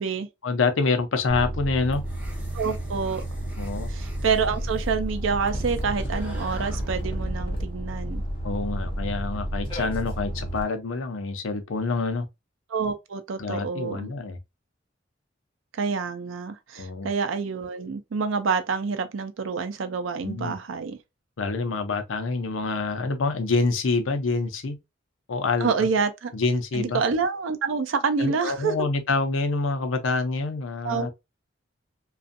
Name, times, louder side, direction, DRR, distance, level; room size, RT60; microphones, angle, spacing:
voice 1, 0.4-2.0 3.6-3.9 8.4-12.3 13.4-14.4 16.8-17.1 20.2-20.6 21.4-24.8 25.3-25.9 26.3-27.0 28.2-31.1, left 3 dB, 90° left, 0.6 m, -26 dB
sound 1, 1.3-10.6, right 1 dB, 30° left, 0.9 m, -31 dB
sound 2, 1.7-7.0, equal, 5° right, 0.8 m, -48 dB
voice 2, 2.5-3.3 3.9-8.2 12.7-14.1 15.8-21.0 25.6-26.3 26.7-28.7 30.8-31.1, right 5 dB, 85° right, 0.5 m, -27 dB
2.5 x 2.4 x 2.5 m
head